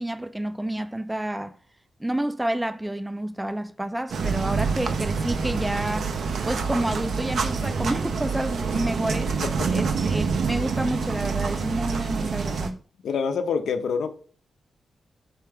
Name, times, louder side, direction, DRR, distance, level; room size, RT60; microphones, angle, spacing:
voice 1, 0.0-1.6 2.0-6.1 6.4-9.3 9.7-12.8, right 1 dB, 10° right, 0.4 m, -29 dB
sound 1, 4.1-12.7, right 5 dB, 70° right, 0.5 m, -27 dB
voice 2, 9.4-9.8 13.0-14.1, left 6 dB, 80° left, 0.6 m, -27 dB
4.4 x 3.3 x 3.4 m
cardioid pair, 65°, 0 cm